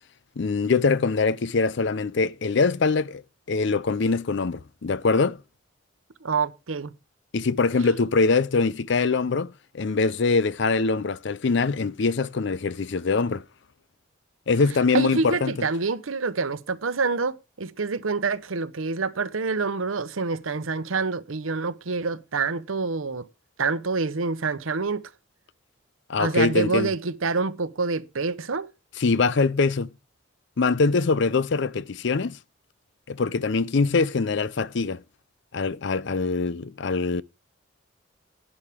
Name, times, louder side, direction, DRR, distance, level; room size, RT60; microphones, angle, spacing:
voice 1, 0.4-3.2 3.5-5.4 7.3-13.4 14.5-15.7 26.1-26.9 29.0-29.9 30.6-32.4 33.1-35.0 35.5-37.2, left 4 dB, 60° left, 0.5 m, -23 dB
voice 2, 6.2-6.9 14.9-23.3 23.6-25.1 26.2-28.7, right 4 dB, 90° right, 0.9 m, -27 dB
11.0 x 9.8 x 3.6 m
head